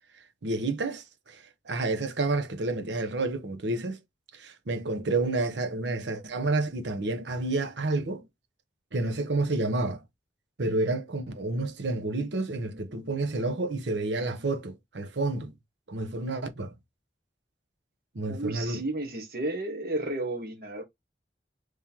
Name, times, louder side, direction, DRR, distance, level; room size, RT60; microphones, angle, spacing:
voice 1, 0.4-4.0 4.3-8.2 8.9-10.0 10.6-15.5 15.9-16.7 18.1-18.8, right 2 dB, 80° right, 0.8 m, -30 dB
voice 2, 18.3-20.9, right 2 dB, 55° right, 1.2 m, -32 dB
3.6 x 3.2 x 2.8 m
head